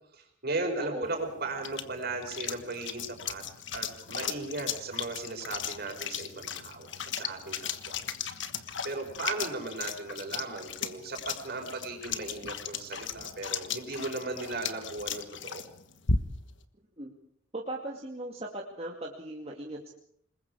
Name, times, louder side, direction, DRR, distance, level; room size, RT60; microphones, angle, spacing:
voice 1, 0.1-3.5 3.7-8.0 8.8-15.6, right 3 dB, 50° right, 4 dB, 5.4 m, -37 dB
voice 2, 0.8-1.2 17.0-17.1 17.5-19.9, right 1 dB, 30° right, -2 dB, 2.4 m, -38 dB
sound 1, 1.0-16.6, left 6 dB, 65° left, 1.4 m, -37 dB
27.5 x 21.0 x 4.9 m, 0.67 s
head